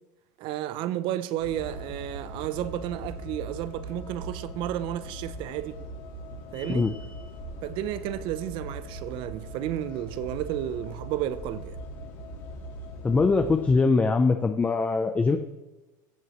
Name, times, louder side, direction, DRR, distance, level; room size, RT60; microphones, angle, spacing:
voice 1, 0.4-5.7 6.5-6.9 7.6-11.8, right 12 dB, 55° right, 0.6 m, -32 dB
sound 1, 1.4-13.8, equal, 80° left, 3.7 m, -40 dB
sound 2, 6.5-7.4, left 3 dB, 35° left, 2.6 m, -47 dB
voice 2, 13.0-15.4, left 4 dB, 15° left, 0.5 m, -22 dB
16.0 x 7.7 x 3.1 m
supercardioid pair, 115°, 10 cm